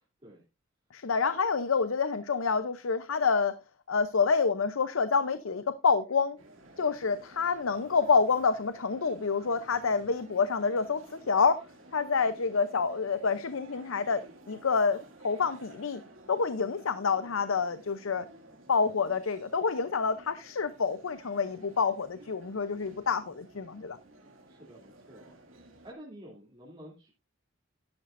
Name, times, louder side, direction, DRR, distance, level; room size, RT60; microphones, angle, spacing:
voice 1, 0.9-3.6 3.9-6.4 6.8-11.6 11.9-16.0 16.3-18.3 18.7-24.0, left 5 dB, 80° left, 0.7 m, -28 dB
sound 1, 6.4-25.9, right 1 dB, 75° right, 2.4 m, -54 dB
voice 2, 24.4-25.3 25.8-27.1, equal, 25° right, 2.9 m, -49 dB
12.0 x 11.5 x 2.6 m
head